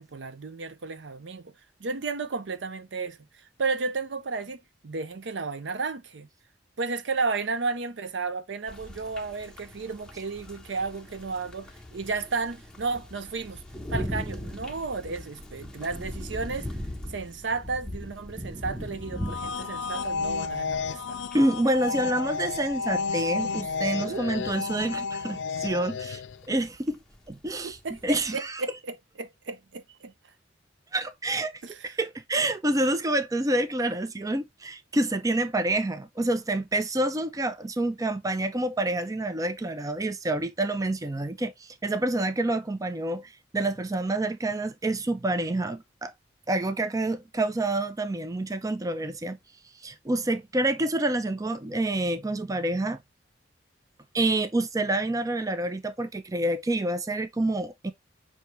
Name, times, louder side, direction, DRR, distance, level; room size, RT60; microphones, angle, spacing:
voice 1, 0.0-1.5 1.8-6.3 6.8-13.6 13.9-16.8 17.1-21.2 24.0-24.3 27.6-30.1 31.6-32.0, right 4 dB, 70° right, 0.6 m, -33 dB
sound 1, 8.7-28.4, equal, 5° left, 1.0 m, -40 dB
sound 2, 19.1-26.5, left 5 dB, 80° left, 0.4 m, -32 dB
voice 2, 21.3-26.2 26.5-27.0 27.3-27.8 28.0-28.6 30.9-31.5 31.8-46.1 46.5-49.4 49.8-53.0 54.1-57.9, right 1 dB, 20° right, 0.5 m, -27 dB
5.8 x 2.8 x 3.2 m
head